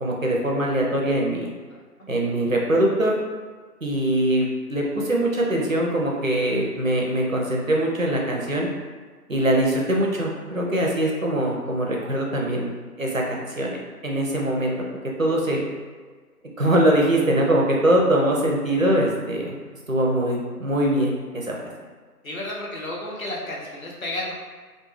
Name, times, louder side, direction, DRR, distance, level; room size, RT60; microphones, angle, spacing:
voice 1, 0.0-1.5 2.1-3.1 3.8-8.7 9.3-12.7 13.0-15.6 16.6-19.5 19.9-21.6, right 1 dB, 55° right, -2 dB, 0.5 m, -22 dB
voice 2, 22.2-24.3, left 1 dB, 60° left, -3 dB, 0.7 m, -32 dB
2.3 x 2.2 x 3.1 m, 1.5 s
figure-of-eight pair, 180°, 48 cm